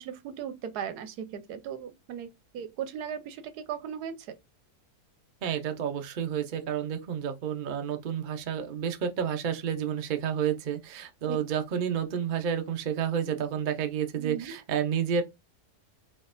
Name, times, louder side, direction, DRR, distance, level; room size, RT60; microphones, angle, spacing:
voice 1, 0.0-4.4 11.3-11.4 14.2-14.5, right 8 dB, 80° right, 1.2 m, -37 dB
voice 2, 5.4-15.2, right 8 dB, 65° right, 0.5 m, -30 dB
4.1 x 3.4 x 2.5 m
omnidirectional pair, 1.7 m